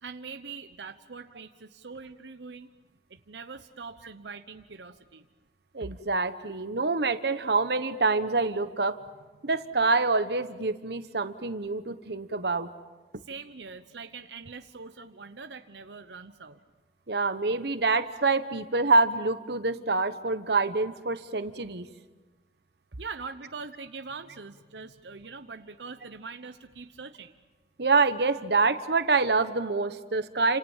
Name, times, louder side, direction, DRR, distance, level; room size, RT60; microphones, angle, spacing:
voice 1, 0.0-2.7 3.1-5.3 13.2-16.6 23.0-27.3, right 4 dB, 90° right, 8 dB, 0.9 m, -43 dB
voice 2, 5.7-9.0 9.4-12.7 17.1-21.9 27.8-30.6, right 3 dB, 70° right, 11 dB, 1.2 m, -26 dB
30.0 x 27.5 x 7.3 m, 1.3 s
head